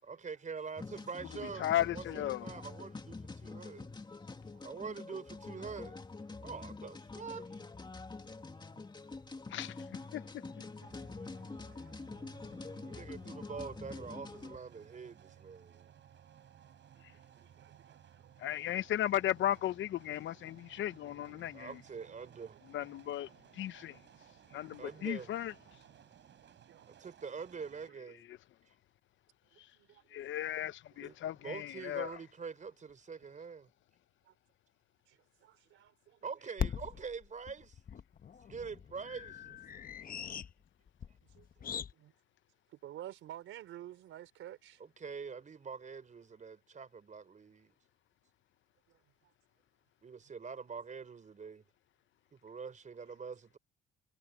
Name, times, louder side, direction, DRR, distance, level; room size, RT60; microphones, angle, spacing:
voice 1, 0.0-3.9 4.6-6.0 6.4-7.5 12.8-15.9 21.5-22.6 24.8-25.4 26.9-28.2 30.9-31.2 31.4-33.7 36.2-37.8 38.5-39.5 44.8-47.7 50.0-51.6 52.3-53.6, right 5 dB, 40° right, 4.9 m, -45 dB
sound 1, 0.8-14.6, left 3 dB, 20° left, 2.4 m, -46 dB
voice 2, 1.6-2.5 9.5-9.7 10.1-10.2 18.4-21.7 22.7-23.3 23.6-23.9 24.5-25.5 30.1-32.1, left 12 dB, 75° left, 0.8 m, -35 dB
sound 2, 10.8-27.9, right 10 dB, 65° right, 6.6 m, -60 dB
voice 3, 12.2-12.9 13.4-13.5 17.4-18.3 20.9-21.0 21.3-21.4 22.2-22.4 24.5-25.1 26.7-27.1 29.5-30.2 34.3-34.4 35.1-36.2 39.7-40.1 41.4-42.1 42.8-44.8 48.9-49.0, right 12 dB, 80° right, 4.3 m, -53 dB
sound 3, 32.1-32.2 32.9-33.0 33.2-33.3 36.6-41.9, left 7 dB, 45° left, 1.1 m, -41 dB
cardioid pair, 90°, 20 cm